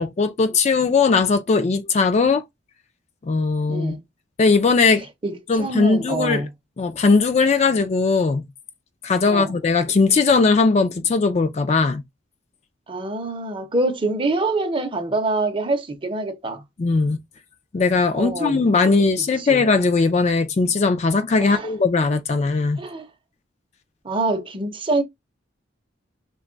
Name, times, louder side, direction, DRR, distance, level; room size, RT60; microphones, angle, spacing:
voice 1, 0.0-2.4 3.2-4.0 4.4-5.1 5.5-6.5 6.8-8.4 9.0-12.0 16.8-17.2 17.7-22.8, left 4 dB, 35° left, 0.3 m, -19 dB
voice 2, 3.7-4.0 5.2-6.5 9.3-9.5 12.9-16.6 18.1-19.0 19.4-19.6 21.4-21.7 22.8-23.1 24.0-25.0, right 2 dB, 25° right, 0.6 m, -25 dB
3.1 x 2.3 x 3.8 m
head